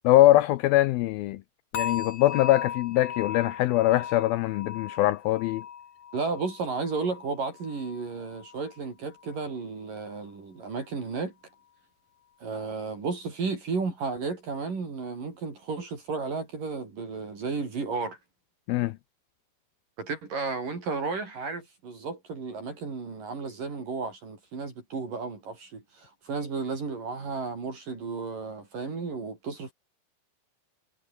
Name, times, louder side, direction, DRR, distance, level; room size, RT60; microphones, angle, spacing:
voice 1, 0.0-1.4 1.7-5.6 18.7-18.9, left 16 dB, 80° left, 2.3 m, -22 dB
sound 1, 1.7-8.8 9.1-9.5 10.0-10.1, left 8 dB, 50° left, 2.9 m, -38 dB
voice 2, 6.1-11.3 12.4-18.2 20.0-29.7, right 4 dB, 50° right, 6.8 m, -33 dB
omnidirectional pair, 4.8 m